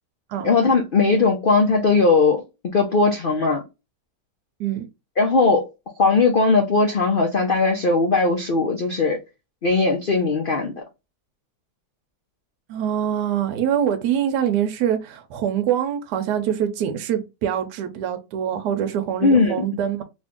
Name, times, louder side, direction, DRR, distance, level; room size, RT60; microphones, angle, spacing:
voice 1, 0.4-3.6 5.2-5.7 6.0-9.2 9.6-10.8 19.2-19.6, left 3 dB, 80° left, 0.4 m, -19 dB
voice 2, 12.7-20.0, right 9 dB, 80° right, 1.2 m, -24 dB
3.1 x 2.6 x 3.5 m
omnidirectional pair, 1.8 m